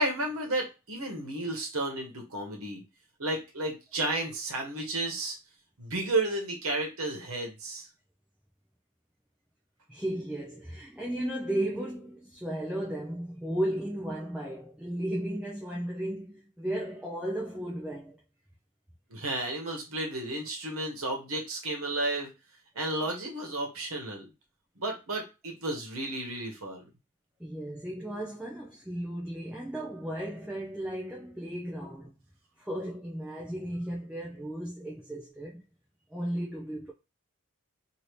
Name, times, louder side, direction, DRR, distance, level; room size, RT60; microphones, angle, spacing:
voice 1, 0.0-2.8 3.2-5.4 5.8-7.9 19.1-22.3 22.7-24.2 24.8-26.9, right 2 dB, 75° right, 1.2 m, -32 dB
voice 2, 9.9-18.2 27.4-32.1 32.6-35.6 36.1-36.9, right 1 dB, 5° right, 0.5 m, -35 dB
2.8 x 2.7 x 3.2 m
head